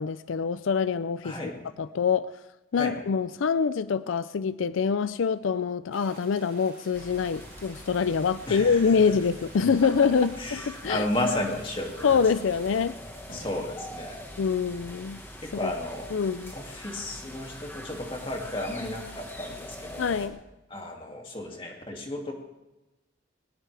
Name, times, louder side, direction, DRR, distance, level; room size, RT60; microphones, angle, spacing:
voice 1, 0.0-1.4 1.8-2.3 2.7-11.1 12.0-13.0 14.4-15.2 15.6-15.7 16.1-16.5 20.0-20.4, left 6 dB, 85° left, 15 dB, 0.4 m, -25 dB
voice 2, 1.2-1.6 2.8-2.9 8.5-9.1 9.8-9.9 10.4-12.1 13.3-14.2 15.4-16.1 16.5-20.3 20.7-22.3, left 1 dB, 25° left, 1 dB, 2.3 m, -33 dB
sound 1, 5.9-12.8, right 3 dB, 45° right, 5.9 m, -52 dB
sound 2, 6.9-20.3, equal, 10° left, 1.4 m, -44 dB
sound 3, 9.6-9.8 10.8-11.0 12.1-12.3 13.3-13.5, left 1 dB, 50° left, 6.4 m, -43 dB
21.0 x 19.0 x 3.4 m, 0.99 s
head